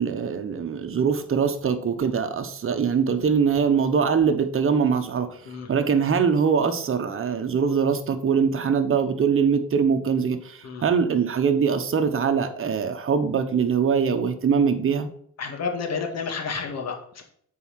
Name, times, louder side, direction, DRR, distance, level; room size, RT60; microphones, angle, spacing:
voice 1, 0.0-15.1, right 6 dB, 45° right, 8 dB, 1.2 m, -23 dB
voice 2, 15.4-17.2, left 5 dB, 60° left, 3 dB, 2.2 m, -30 dB
8.1 x 4.9 x 5.8 m, 0.64 s
cardioid pair, 90°, 30 cm